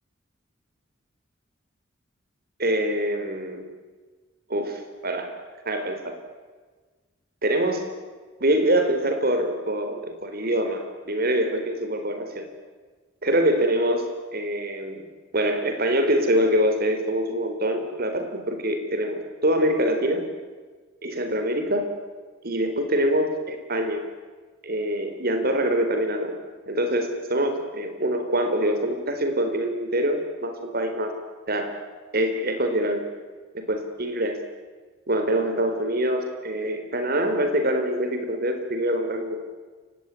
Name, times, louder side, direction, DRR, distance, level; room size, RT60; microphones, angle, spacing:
voice 1, 2.6-3.7 4.5-5.3 5.7-6.2 7.4-7.9 8.4-12.5 13.2-15.0 15.3-20.3 21.0-22.0 22.4-24.0 24.6-26.4 26.7-31.2 31.5-31.7 32.1-33.1 33.5-34.4 35.1-39.4, right 1 dB, 55° right, 7 dB, 4.1 m, -25 dB
29.0 x 16.5 x 9.8 m, 1.4 s
head